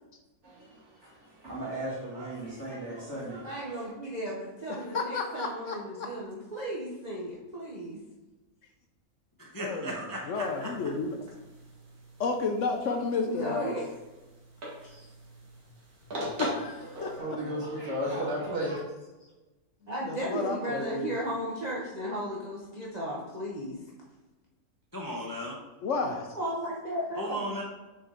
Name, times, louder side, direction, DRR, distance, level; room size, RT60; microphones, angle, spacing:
voice 1, 0.4-3.9 16.9-18.8, equal, 50° right, -6 dB, 2.5 m, -35 dB
voice 2, 3.4-8.0 13.3-13.9 14.9-15.1 19.9-23.8 26.3-27.4, right 1 dB, 35° right, -5 dB, 0.9 m, -35 dB
voice 3, 4.7-6.1 9.6-10.0 10.3-11.2 12.2-13.7 16.4-17.4 20.1-21.1 25.8-26.3, left 4 dB, 65° left, 4 dB, 0.9 m, -31 dB
voice 4, 9.4-10.7 24.9-25.6 27.1-27.6, equal, 20° left, -2 dB, 0.7 m, -36 dB
sound 1, 10.3-17.2, equal, 85° right, 2.1 m, -42 dB
6.6 x 4.5 x 3.8 m, 1.1 s
omnidirectional pair, 1.5 m